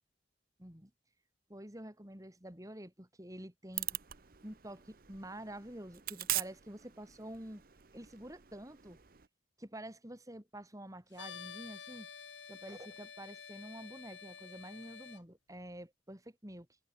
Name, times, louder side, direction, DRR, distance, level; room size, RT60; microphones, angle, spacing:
voice 1, 0.6-0.9 1.5-3.9 4.4-7.6 7.9-9.0 9.6-12.1 12.5-16.7, right 1 dB, 20° right, 4.9 m, -48 dB
sound 1, 3.7-9.3, right 14 dB, 55° right, 1.0 m, -42 dB
sound 2, 11.1-15.2, left 7 dB, 75° left, 4.7 m, -50 dB
head